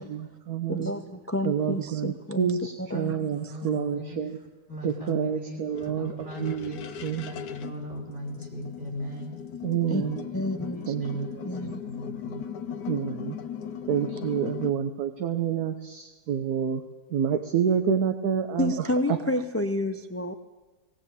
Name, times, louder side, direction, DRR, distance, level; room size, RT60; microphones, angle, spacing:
voice 1, 0.0-0.9 1.4-4.4 4.8-6.7 7.0-7.3 9.6-10.3 10.9-11.5 12.9-13.4 13.9-16.8 17.1-19.2, right 8 dB, 65° right, 7 dB, 1.5 m, -28 dB
voice 2, 0.7-2.5 2.8-3.7 9.9-10.0 10.3-10.9 11.4-11.8 18.6-20.3, left 1 dB, 20° left, 8 dB, 0.3 m, -30 dB
voice 3, 3.5-4.2 4.7-6.8 7.2-9.3 9.9-10.0 10.7-11.2 11.6-12.4, equal, 40° right, -2 dB, 5.7 m, -38 dB
sound 1, 5.1-14.7, left 7 dB, 85° left, 1.6 m, -38 dB
18.5 x 17.0 x 8.4 m, 1.2 s
omnidirectional pair, 1.8 m